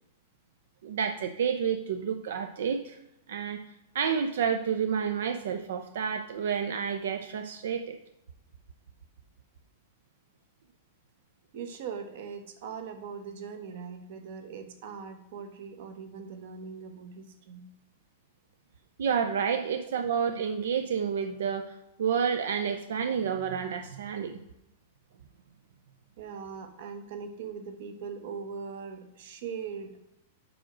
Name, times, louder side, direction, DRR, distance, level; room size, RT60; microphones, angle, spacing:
voice 1, 0.8-3.0 3.3-3.6 3.9-8.0 19.0-24.4, right 7 dB, 75° right, 7 dB, 0.5 m, -30 dB
voice 2, 11.5-17.6 19.5-19.6 26.2-29.9, right 6 dB, 50° right, 7 dB, 0.9 m, -40 dB
5.0 x 4.9 x 6.0 m, 0.88 s
supercardioid pair, 175°, 0 cm